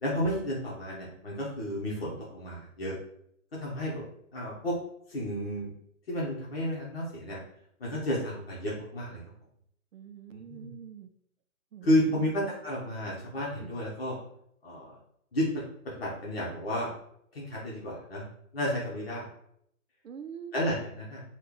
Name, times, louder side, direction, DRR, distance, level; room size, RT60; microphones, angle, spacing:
voice 1, 0.0-3.0 3.6-4.0 4.3-4.7 5.1-5.7 6.1-7.4 7.8-9.2 10.3-10.7 11.8-14.2 14.6-14.9 15.3-15.5 15.8-16.9 17.3-18.3 18.5-19.3 20.5-21.2, equal, 45° left, -5 dB, 0.9 m, -31 dB
voice 2, 9.9-11.1 11.7-12.3 13.6-13.7 20.0-20.5, right 8 dB, 65° right, 10 dB, 0.5 m, -45 dB
3.1 x 2.4 x 3.7 m, 0.71 s
hypercardioid pair, 170°, 42 cm